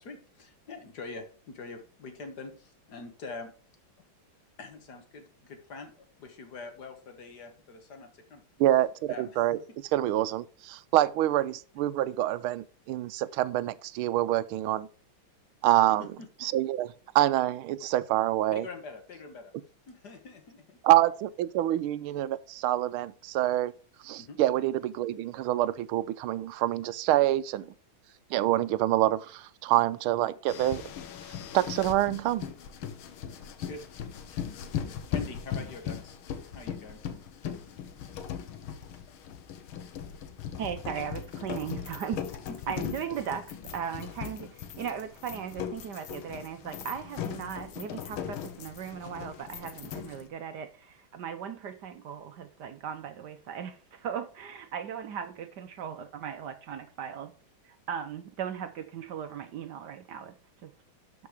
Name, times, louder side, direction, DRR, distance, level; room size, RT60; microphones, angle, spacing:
voice 1, 0.0-3.5 4.6-5.9 6.2-8.4 9.1-9.6 16.0-16.3 18.5-19.5 19.9-20.8 24.2-24.4 33.4-33.8 34.2-34.5 35.1-36.2 36.5-37.0 42.5-42.9, left 3 dB, 55° left, 1.9 m, -44 dB
voice 2, 8.6-9.6 9.9-14.9 15.6-16.1 16.4-16.9 17.1-18.7 20.8-23.7 24.0-27.6 28.3-30.8 31.5-32.5, right 14 dB, 90° right, 1.5 m, -26 dB
sound 1, 30.5-50.3, left 8 dB, 85° left, 1.8 m, -39 dB
voice 3, 40.6-42.2 42.7-57.3 57.6-60.3 60.6-60.7, right 8 dB, 65° right, 1.2 m, -37 dB
12.0 x 4.7 x 4.9 m
omnidirectional pair, 2.3 m